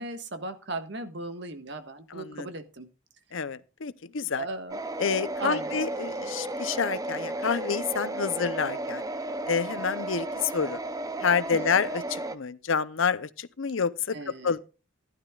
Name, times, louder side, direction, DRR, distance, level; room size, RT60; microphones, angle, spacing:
voice 1, 0.0-2.9 4.4-4.8 5.4-5.7 11.5-11.6 14.1-14.5, right 2 dB, 60° right, 1.5 m, -37 dB
voice 2, 2.1-2.5 3.3-4.5 5.0-9.0 9.5-10.8 11.2-14.6, left 6 dB, 80° left, 0.7 m, -28 dB
sound 1, 4.7-12.4, right 2 dB, 20° right, 0.6 m, -34 dB
15.0 x 12.0 x 2.4 m
head